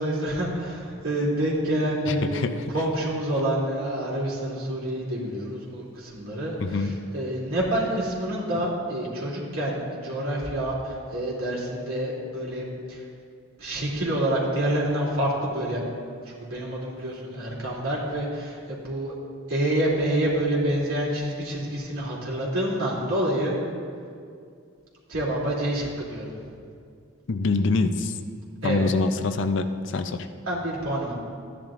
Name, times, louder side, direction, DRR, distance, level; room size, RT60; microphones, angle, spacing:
voice 1, 0.0-2.3 2.7-6.5 6.8-13.0 13.6-15.8 16.2-19.2 19.5-23.5 25.1-26.2 28.6-28.9 30.5-31.1, right 1 dB, 80° right, -6 dB, 2.8 m, -27 dB
voice 2, 2.1-2.6 6.6-6.9 8.5-8.7 27.3-28.1 28.6-30.3, left 3 dB, 55° left, 9 dB, 0.5 m, -25 dB
14.0 x 10.0 x 2.5 m, 2.3 s
head